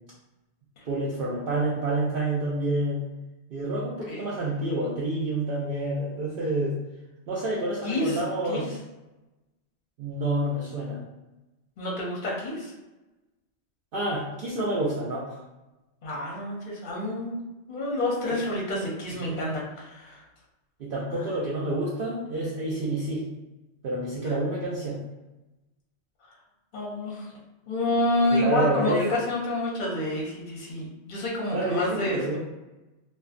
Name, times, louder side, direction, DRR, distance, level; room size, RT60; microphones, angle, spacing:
voice 1, 0.9-3.1 3.5-6.8 7.3-8.7 10.0-11.0 13.9-15.4 19.2-19.3 20.8-23.2 23.8-25.0 28.3-29.0 31.5-32.4, right 1 dB, 60° right, -6 dB, 0.6 m, -28 dB
voice 2, 3.8-4.3 7.8-8.6 11.8-12.7 16.0-17.4 17.7-20.2 21.1-21.3 24.2-24.4 26.7-27.4 27.7-32.2, left 1 dB, 55° left, -3 dB, 0.7 m, -28 dB
2.5 x 2.2 x 2.4 m, 1.0 s
omnidirectional pair, 1.2 m